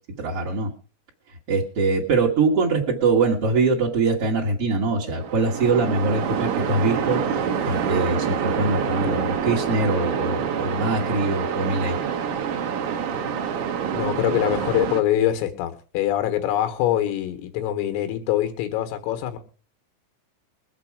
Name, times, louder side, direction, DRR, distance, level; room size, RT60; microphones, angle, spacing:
voice 1, 0.2-0.7 1.5-12.0, right 3 dB, 50° right, -4 dB, 1.7 m, -23 dB
Waves surf, 5.2-15.0, right 7 dB, 65° right, 2.0 m, -26 dB
voice 2, 13.9-19.4, left 12 dB, 90° left, 8 dB, 4.3 m, -24 dB
22.0 x 8.3 x 4.9 m, 0.36 s
omnidirectional pair, 5.9 m